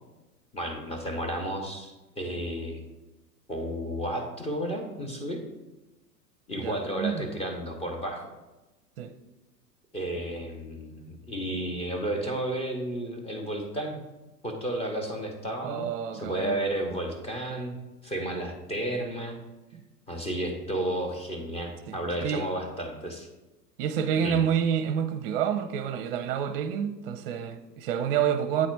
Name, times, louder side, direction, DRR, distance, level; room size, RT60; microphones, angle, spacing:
voice 1, 0.5-2.8 3.5-5.4 6.5-8.3 9.9-14.0 14.4-17.7 18.0-19.4 20.1-23.3 24.2-24.4, right 1 dB, 10° left, 0.9 m, -32 dB
voice 2, 6.6-7.3 9.0-9.1 15.6-16.6 18.9-19.0 19.7-19.8 21.9-22.5 23.8-28.7, right 8 dB, 35° right, 0.7 m, -28 dB
8.5 x 4.1 x 4.5 m
figure-of-eight pair, 100°, 48 cm